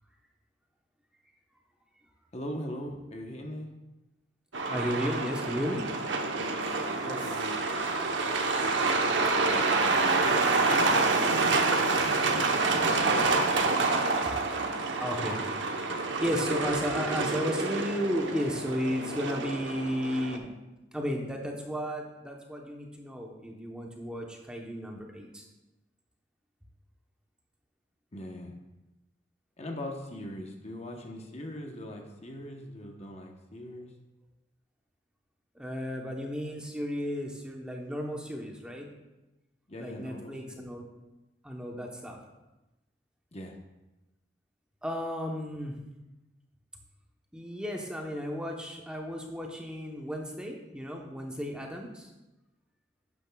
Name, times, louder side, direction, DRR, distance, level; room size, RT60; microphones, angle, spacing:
voice 1, 2.3-3.7 6.3-6.5 7.0-7.6 8.3-11.8 28.1-28.5 29.6-33.9 39.7-40.7 43.3-43.6, left 1 dB, 35° left, 2 dB, 0.9 m, -41 dB
Truck, 4.5-20.4, right 3 dB, 80° right, 0.9 m, -27 dB
voice 2, 4.7-5.8 14.2-14.3 15.0-15.4 16.2-20.5 20.9-25.4 35.5-38.9 39.8-40.9 41.4-42.2 44.8-45.8 47.3-52.1, equal, 5° right, 0 dB, 0.9 m, -34 dB
11.5 x 9.0 x 2.3 m, 1.0 s
head